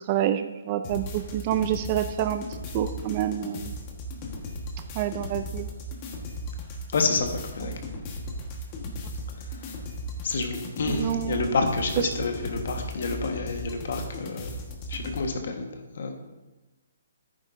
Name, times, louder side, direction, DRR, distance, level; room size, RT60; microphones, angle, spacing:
voice 1, 0.1-2.4 2.7-3.7 5.0-5.7 10.9-11.4, right 11 dB, 35° right, 9 dB, 0.4 m, -27 dB
sound 1, 0.8-15.3, equal, 30° left, 1.4 m, -37 dB
voice 2, 6.9-7.7 9.5-9.7 10.2-14.5 14.9-16.1, left 4 dB, 65° left, 4 dB, 1.4 m, -29 dB
10.5 x 9.2 x 2.7 m, 1.1 s
hypercardioid pair, 150°, 0 cm